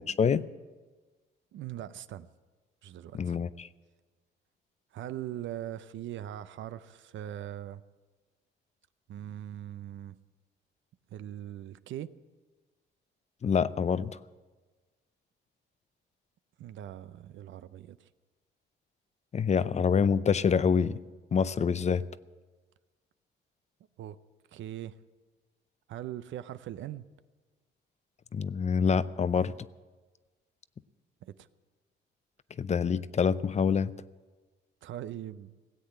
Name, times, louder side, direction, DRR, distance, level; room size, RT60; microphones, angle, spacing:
voice 1, 0.1-0.4 3.1-3.7 13.4-14.2 19.3-21.0 21.3-22.0 28.3-29.5 32.6-33.9, left 6 dB, 35° left, 0.5 m, -26 dB
voice 2, 1.5-2.3 2.8-3.4 4.9-7.8 9.1-10.2 11.1-12.1 16.6-18.1 24.0-24.2 24.5-25.0 25.9-27.0 31.2-31.5 34.8-35.5, right 12 dB, 70° right, 0.6 m, -40 dB
17.0 x 8.2 x 8.8 m
cardioid pair, 90°, 20 cm